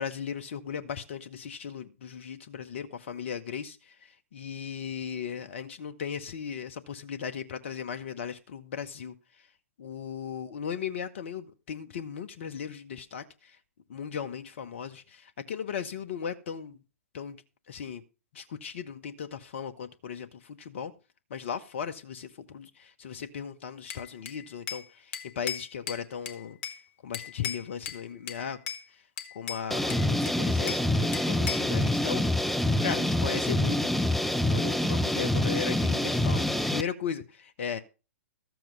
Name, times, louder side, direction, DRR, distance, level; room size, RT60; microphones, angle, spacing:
voice 1, 0.0-9.1 9.8-13.6 13.9-16.8 17.1-17.4 17.7-18.0 18.3-20.9 21.3-26.6 27.0-28.6 29.3-32.2 32.8-34.2 34.5-37.8, left 7 dB, 55° left, 1.1 m, -37 dB
Bell / Glass, 23.9-24.9 25.1-26.8 27.1-28.0 28.3-28.8 29.2-30.9 31.1-31.7, left 8 dB, 35° left, 1.4 m, -37 dB
sound 1, 29.7-36.8, left 1 dB, ahead, 0.5 m, -26 dB
13.5 x 7.7 x 5.1 m
figure-of-eight pair, 120°, 8 cm